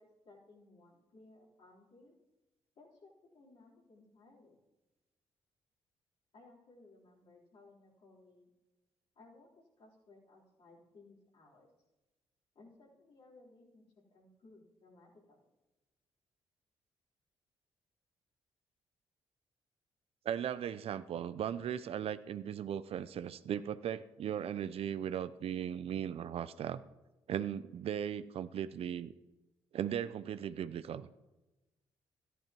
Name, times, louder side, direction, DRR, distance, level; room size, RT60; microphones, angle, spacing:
voice 1, 0.0-2.1 2.8-4.6 6.3-8.5 9.2-11.7 12.5-15.5, left 2 dB, 60° left, -5 dB, 3.7 m, -61 dB
voice 2, 20.3-26.8 27.3-29.1 29.7-31.1, right 9 dB, 60° right, 14 dB, 0.5 m, -37 dB
14.0 x 11.0 x 3.0 m, 1.1 s
hypercardioid pair, 50°, 11 cm